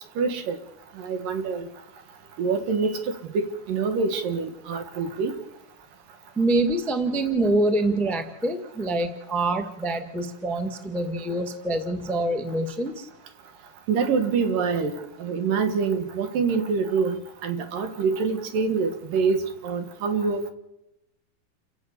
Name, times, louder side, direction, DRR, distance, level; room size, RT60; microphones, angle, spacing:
voice 1, 0.2-0.6 1.0-1.7 2.4-5.4 13.9-20.5, right 5 dB, 75° right, 7 dB, 3.4 m, -26 dB
voice 2, 6.4-13.1, right 2 dB, ahead, 6 dB, 0.5 m, -25 dB
30.0 x 16.0 x 6.8 m, 0.90 s
omnidirectional pair, 4.0 m